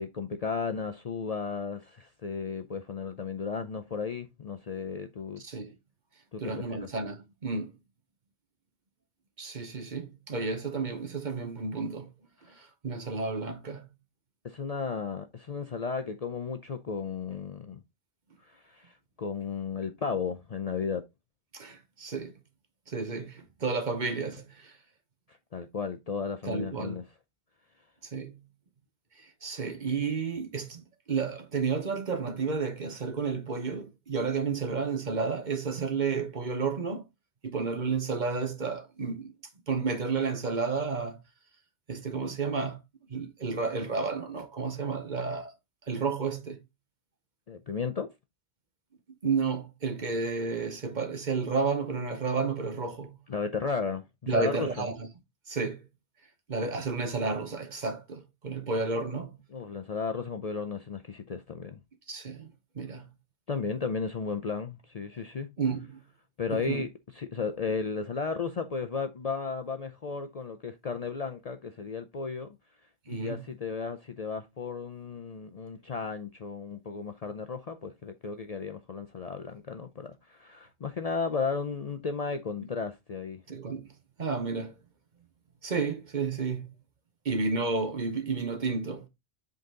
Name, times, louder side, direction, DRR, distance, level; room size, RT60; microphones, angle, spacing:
voice 1, 0.0-5.4 6.3-6.5 12.5-12.6 14.4-17.8 18.4-21.0 25.3-27.0 47.5-48.1 53.3-54.7 59.5-61.8 63.5-65.5 66.4-66.9 67.2-72.5 73.1-83.4, left 5 dB, 45° left, 0.5 m, -34 dB
voice 2, 5.4-5.8 6.4-7.7 9.4-12.1 12.5-13.9 21.5-22.3 22.9-24.8 26.5-27.0 28.0-28.4 29.2-37.1 37.4-39.4 39.7-41.2 41.9-42.8 43.1-45.5 45.9-46.6 49.2-53.2 54.3-55.1 55.5-55.9 56.5-59.4 62.1-63.1 65.6-66.0 66.5-66.9 73.1-73.4 83.5-83.9 84.2-84.8 85.6-86.7 87.2-89.0, right 4 dB, 45° right, 1.1 m, -31 dB
7.8 x 3.9 x 3.7 m
omnidirectional pair, 1.1 m